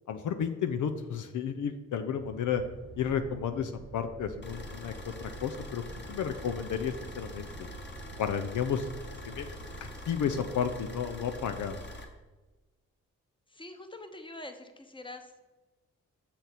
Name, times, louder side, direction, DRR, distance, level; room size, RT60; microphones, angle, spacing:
voice 1, 0.1-2.6 3.0-4.9 5.2-5.8 6.1-7.5 8.2-8.9 9.3-9.6 10.1-11.8, left 7 dB, 65° left, 8 dB, 0.6 m, -32 dB
sound 1, 2.2-9.9, right 3 dB, 35° right, 1.1 m, -48 dB
sound 2, 4.4-12.0, left 1 dB, 35° left, 1.4 m, -44 dB
voice 2, 13.5-15.5, left 2 dB, 15° left, 7 dB, 1.0 m, -45 dB
6.7 x 5.9 x 4.1 m, 1.2 s
supercardioid pair, 50°, 32 cm